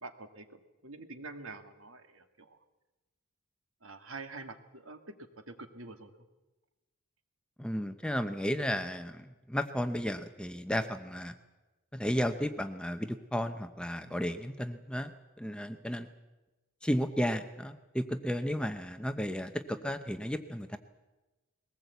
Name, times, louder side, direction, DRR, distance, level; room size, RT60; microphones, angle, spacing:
voice 1, 0.0-2.6 3.8-6.1, right 3 dB, 65° right, 7 dB, 1.7 m, -46 dB
voice 2, 7.6-11.3 11.9-15.1 15.4-16.1 16.8-20.8, equal, 5° left, 8 dB, 0.7 m, -33 dB
21.0 x 18.5 x 8.2 m, 1.1 s
head